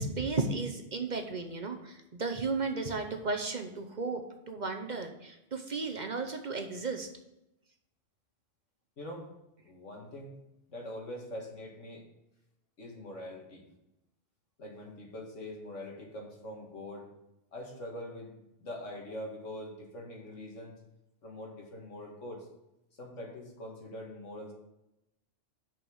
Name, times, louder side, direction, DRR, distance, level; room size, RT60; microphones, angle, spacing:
voice 1, 0.0-7.1, right 3 dB, 45° right, 5 dB, 0.8 m, -34 dB
voice 2, 9.0-9.3 9.6-10.4 10.7-12.0 12.8-13.7 14.6-17.1 17.5-18.3 18.6-20.8 21.2-22.5 23.0-24.5, left 1 dB, 85° left, 0 dB, 2.2 m, -43 dB
6.2 x 5.8 x 7.1 m, 0.89 s
omnidirectional pair, 1.2 m